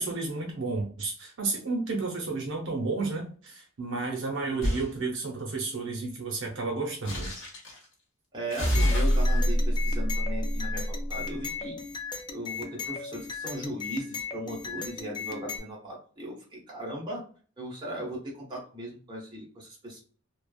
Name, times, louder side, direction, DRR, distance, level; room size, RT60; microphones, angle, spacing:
voice 1, 0.0-7.3, right 3 dB, 65° right, 0 dB, 0.6 m, -32 dB
sound 1, 4.6-4.9 7.1-7.8 8.5-11.1, equal, 75° left, 1.0 m, -26 dB
voice 2, 8.3-11.9 12.3-17.2 17.6-20.0, right 1 dB, 20° right, -3 dB, 1.0 m, -38 dB
sound 2, 8.7-15.6, left 5 dB, 20° left, 0.3 m, -37 dB
3.2 x 2.0 x 2.2 m, 0.42 s
head